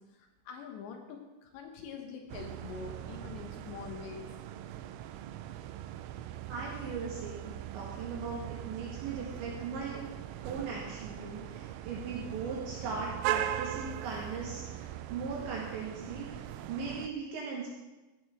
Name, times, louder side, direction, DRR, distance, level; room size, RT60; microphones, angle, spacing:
voice 1, 0.1-4.3, left 6 dB, 70° left, 3 dB, 3.0 m, -45 dB
sound 1, 2.3-17.1, right 12 dB, 90° right, 3.2 m, -40 dB
voice 2, 6.5-10.2 10.4-17.8, right 4 dB, 70° right, -3 dB, 3.8 m, -39 dB
15.0 x 13.0 x 3.6 m, 1.1 s
omnidirectional pair, 5.8 m